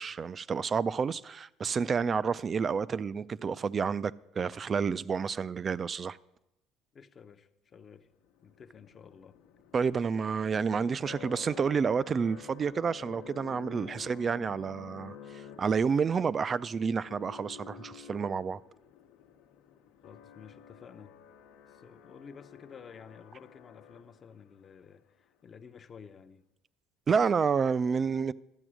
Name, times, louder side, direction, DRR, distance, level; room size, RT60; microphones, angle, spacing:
voice 1, 0.0-6.2 9.7-18.6 27.1-28.3, right 6 dB, 30° right, 0.3 m, -29 dB
voice 2, 6.9-8.1 8.4-9.4 20.0-21.2 21.7-26.5 27.9-28.0, left 6 dB, 35° left, 0.6 m, -52 dB
sound 1, 8.2-24.5, left 8 dB, 85° left, 0.9 m, -51 dB
12.5 x 7.9 x 6.2 m
cardioid pair, 115°, 0 cm